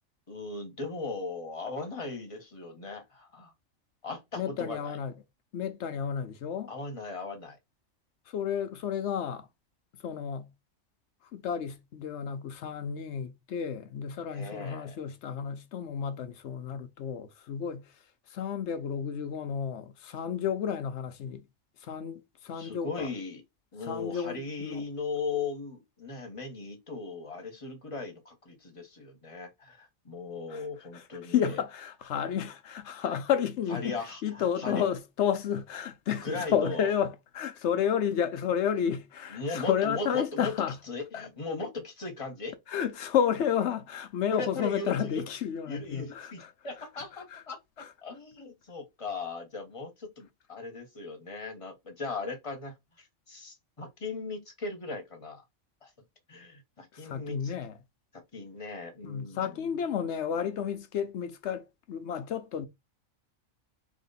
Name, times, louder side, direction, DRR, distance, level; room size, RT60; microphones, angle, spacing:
voice 1, 0.3-3.5 4.0-5.0 6.7-7.6 14.3-15.0 22.5-23.4 23.7-31.6 33.7-34.8 36.2-36.9 39.3-40.5 40.9-42.5 44.3-45.2 45.7-55.4 55.8-55.9 56.3-57.5 58.1-59.7, left 3 dB, 25° left, 1.1 m, -38 dB
voice 2, 4.3-5.1 5.5-6.7 8.3-9.5 10.0-10.5 11.3-17.9 18.3-21.4 21.8-23.1 23.9-24.8 30.5-30.6 30.9-33.9 34.2-40.8 41.1-41.3 42.7-46.5 47.3-47.4 47.8-47.9 56.9-57.7 59.0-62.7, left 8 dB, 65° left, 0.9 m, -31 dB
3.5 x 3.0 x 4.0 m
omnidirectional pair, 1.4 m